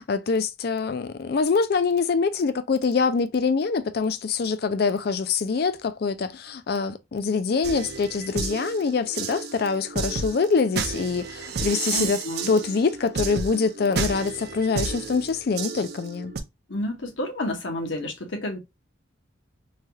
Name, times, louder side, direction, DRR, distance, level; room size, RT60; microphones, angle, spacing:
voice 1, 0.0-12.2 12.5-16.3, left 5 dB, 50° left, 0.3 m, -24 dB
sound 1, 7.6-16.4, right 4 dB, 50° right, 0.4 m, -32 dB
voice 2, 11.9-12.5 16.7-18.6, left 1 dB, 65° left, 0.9 m, -30 dB
3.2 x 2.3 x 2.7 m
head